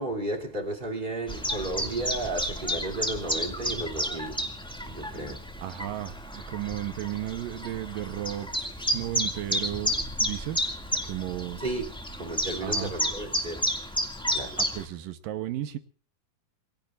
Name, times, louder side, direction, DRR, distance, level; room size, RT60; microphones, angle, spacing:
voice 1, 0.0-4.4 4.8-5.5 11.6-11.9 12.2-13.6 14.3-14.6, right 2 dB, 15° right, 2.6 m, -33 dB
Chirp tweet, 1.3-14.8, equal, 5° left, 0.6 m, -31 dB
voice 2, 5.6-10.8 11.0-11.6 12.6-12.9 14.6-15.8, right 13 dB, 70° right, 2.4 m, -34 dB
28.5 x 18.0 x 2.5 m
omnidirectional pair, 4.6 m